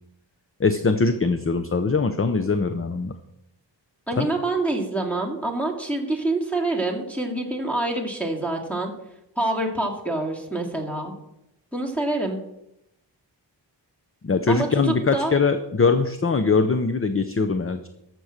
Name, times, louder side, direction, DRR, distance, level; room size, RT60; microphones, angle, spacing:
voice 1, 0.6-3.1 4.2-4.3 14.2-17.9, left 4 dB, 30° left, 9 dB, 0.6 m, -22 dB
voice 2, 4.1-8.9 9.4-11.1 11.7-12.4 14.5-15.3, right 2 dB, 5° left, 2 dB, 2.2 m, -26 dB
13.5 x 6.2 x 6.5 m, 0.85 s
wide cardioid pair, 120°, 44 cm